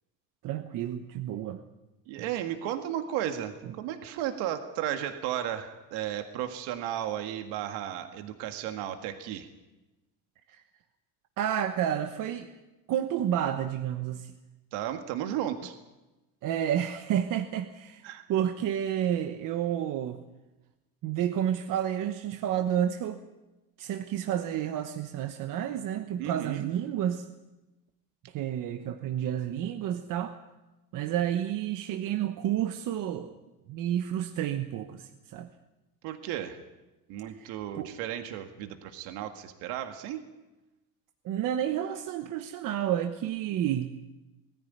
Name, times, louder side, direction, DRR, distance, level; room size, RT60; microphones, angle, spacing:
voice 1, 0.4-1.6 3.6-3.7 10.5-10.6 11.4-12.5 12.9-14.3 16.4-20.2 21.0-23.2 23.8-27.3 28.3-30.4 30.9-33.3 33.7-35.5 37.3-37.9 41.2-43.9, right 10 dB, 55° right, 7 dB, 1.1 m, -30 dB
voice 2, 2.1-9.5 14.7-15.8 18.0-18.2 26.2-26.7 36.0-36.6 37.1-40.2, right 11 dB, 85° right, 7 dB, 1.9 m, -34 dB
20.5 x 14.5 x 9.4 m, 1.1 s
cardioid pair, 145°, 39 cm